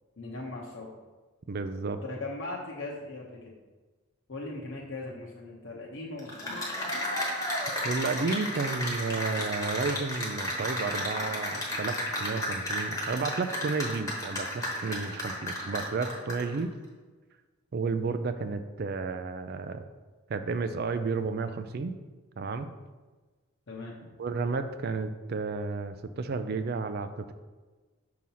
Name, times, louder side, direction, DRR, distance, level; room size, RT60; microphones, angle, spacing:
voice 1, 0.2-0.9 2.0-3.5 4.3-6.6 23.7-24.1, left 2 dB, 55° left, -4 dB, 0.8 m, -39 dB
voice 2, 1.5-2.0 7.8-16.7 17.7-19.8 20.3-22.0 22.4-22.7 24.2-27.3, right 4 dB, 45° right, 10 dB, 0.4 m, -32 dB
Cheering / Applause, 6.2-16.6, left 1 dB, 15° left, 1.0 m, -33 dB
6.2 x 2.9 x 5.5 m, 1.3 s
head